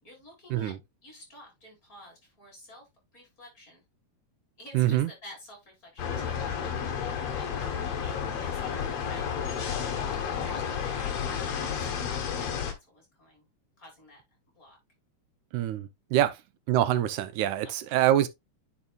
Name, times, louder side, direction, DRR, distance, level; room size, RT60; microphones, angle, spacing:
voice 1, 0.0-0.7 1.0-3.8 4.6-11.9 12.4-13.5 13.8-14.2 14.5-14.8 16.2-16.3 17.6-18.0, left 1 dB, 25° left, 5.5 m, -51 dB
voice 2, 4.7-5.1 15.5-16.3 16.7-18.3, right 12 dB, 80° right, 2.0 m, -25 dB
sound 1, 6.0-12.7, left 7 dB, 60° left, 2.2 m, -31 dB
9.9 x 5.2 x 2.4 m
omnidirectional pair, 3.6 m